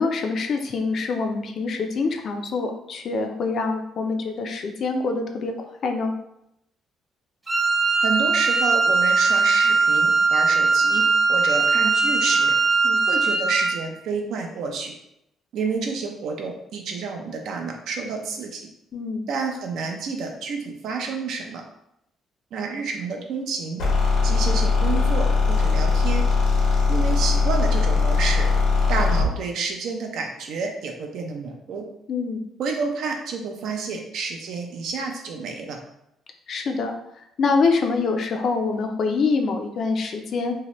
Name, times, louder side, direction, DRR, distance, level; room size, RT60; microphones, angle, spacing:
voice 1, 0.0-6.1 12.8-13.0 18.9-19.3 32.1-32.4 36.5-40.5, left 4 dB, 55° left, 5 dB, 0.4 m, -25 dB
Wind instrument woodwind instrument, 7.5-13.8, right 4 dB, 25° right, 0.8 m, -20 dB
voice 2, 8.0-11.0 11.3-12.5 13.1-14.9 15.5-18.7 19.3-21.6 22.5-23.8 24.2-26.2 26.9-28.5 28.9-31.9 32.6-35.8, right 4 dB, 70° right, 3 dB, 0.5 m, -29 dB
sound 1, 23.8-29.3, left 4 dB, 80° left, 0.7 m, -20 dB
2.8 x 2.1 x 2.9 m, 0.81 s
cardioid pair, 95°, 0 cm